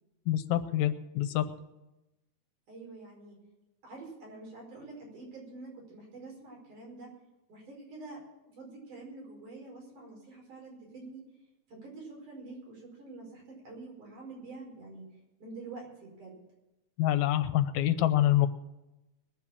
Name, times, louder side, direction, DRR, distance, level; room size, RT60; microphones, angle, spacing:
voice 1, 0.3-1.4 17.0-18.5, left 13 dB, 75° left, 12 dB, 2.0 m, -26 dB
voice 2, 2.7-3.4 3.8-7.1 7.5-8.2 8.6-11.2 11.7-15.0 15.4-16.3, right 3 dB, 85° right, -2 dB, 6.6 m, -46 dB
21.0 x 7.4 x 7.2 m, 0.98 s
omnidirectional pair, 3.5 m